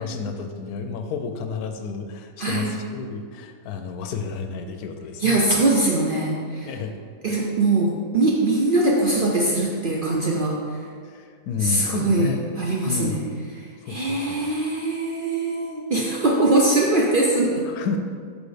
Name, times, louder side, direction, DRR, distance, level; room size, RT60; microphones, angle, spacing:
voice 1, 0.0-5.4 6.6-6.9 7.2-7.3 11.1-12.4 12.8-13.2 13.8-14.4 17.7-18.0, left 5 dB, 90° left, 6 dB, 1.1 m, -31 dB
voice 2, 2.4-2.7 5.2-6.7 7.2-10.6 11.6-13.2 13.9-17.6, right 2 dB, 60° right, -3 dB, 0.5 m, -22 dB
5.0 x 4.1 x 4.9 m, 2.1 s
omnidirectional pair, 1.5 m